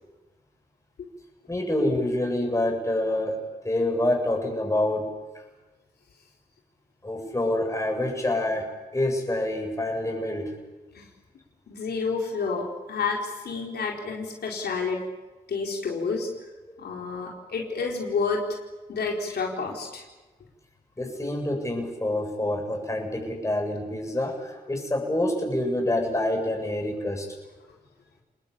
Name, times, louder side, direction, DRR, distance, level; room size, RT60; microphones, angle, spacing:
voice 1, 1.5-3.4 3.6-5.1 7.0-8.7 8.9-10.5 21.0-27.3, left 1 dB, 20° left, 1 dB, 7.5 m, -27 dB
voice 2, 11.7-15.0 15.5-16.3 16.8-18.4 18.9-20.0, left 4 dB, 85° left, -1 dB, 4.6 m, -29 dB
29.0 x 20.5 x 8.6 m, 1.2 s
cardioid pair, 80°, 16 cm